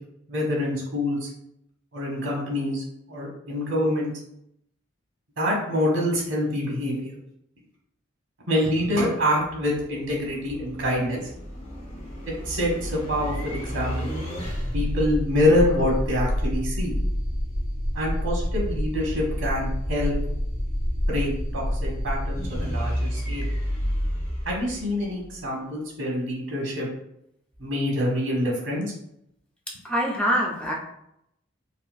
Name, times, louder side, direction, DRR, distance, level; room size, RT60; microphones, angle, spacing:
voice 1, 0.3-1.3 1.9-4.1 5.4-7.1 8.5-11.3 12.2-14.1 14.7-16.9 17.9-20.1 21.1-23.4 24.4-26.9 27.6-28.8, left 1 dB, 85° right, -3 dB, 1.1 m, -26 dB
sound 1, 9.4-25.4, equal, 35° left, 1.0 m, -29 dB
voice 2, 29.8-30.7, equal, 5° left, -4 dB, 0.6 m, -24 dB
4.1 x 2.1 x 2.3 m, 0.77 s
head